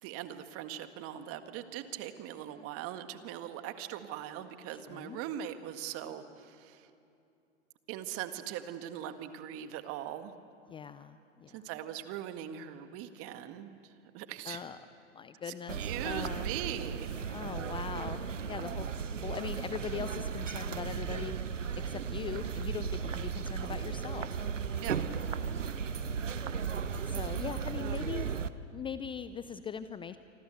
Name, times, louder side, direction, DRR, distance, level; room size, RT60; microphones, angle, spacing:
voice 1, 0.0-6.9 7.9-10.3 11.5-14.6 15.5-17.3 24.8-25.0 27.7-28.0, right 10 dB, 40° right, 9 dB, 1.8 m, -41 dB
voice 2, 4.7-5.2 10.7-11.6 14.5-14.8 15.1-16.5 17.3-18.2 18.5-18.9 19.2-21.4 21.9-24.3 27.1-28.4 28.7-30.2, left 7 dB, 15° left, 12 dB, 0.5 m, -40 dB
sound 1, 15.7-28.5, right 6 dB, 85° right, 1.0 m, -35 dB
27.5 x 25.0 x 8.0 m, 2.6 s
figure-of-eight pair, 100°, 37 cm